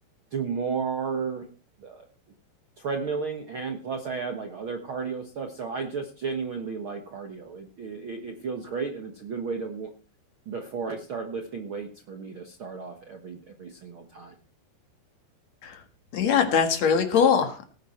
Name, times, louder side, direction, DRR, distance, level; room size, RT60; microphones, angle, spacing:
voice 1, 0.3-1.5 1.8-2.1 2.8-9.9 10.4-14.3, right 5 dB, 80° right, 5 dB, 1.1 m, -33 dB
voice 2, 16.1-17.7, left 7 dB, 55° left, 6 dB, 2.4 m, -22 dB
18.0 x 10.0 x 4.4 m, 0.36 s
omnidirectional pair, 4.7 m